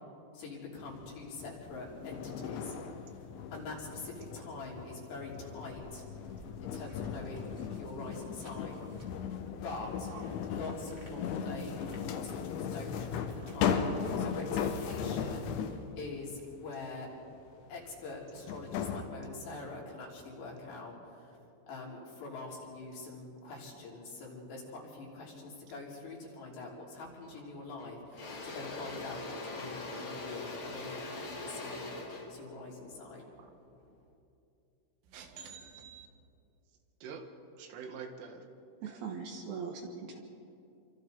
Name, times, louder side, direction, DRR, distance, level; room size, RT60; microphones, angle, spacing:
voice 1, 0.3-2.7 3.5-6.1 6.6-7.5 7.8-8.8 9.6-10.1 10.5-11.8 12.1-17.1 17.7-21.4 21.7-33.3, left 3 dB, 65° left, -3 dB, 5.3 m, -44 dB
sound 1, 0.8-15.9 17.7-17.8 18.5-19.0, left 7 dB, 80° left, 3.4 m, -37 dB
sound 2, 1.5-15.6, equal, 25° right, 1.0 m, -57 dB
Engine / Drill, 27.2-27.4 27.8-33.9, left 2 dB, 40° left, 2.0 m, -42 dB
voice 2, 35.1-36.1 37.0-37.3 37.6-38.5 38.9-39.0, right 6 dB, 85° right, 5 dB, 4.0 m, -46 dB
voice 3, 38.8-40.2, right 5 dB, 65° right, 2 dB, 3.0 m, -40 dB
28.5 x 25.0 x 4.0 m, 2.6 s
omnidirectional pair, 5.5 m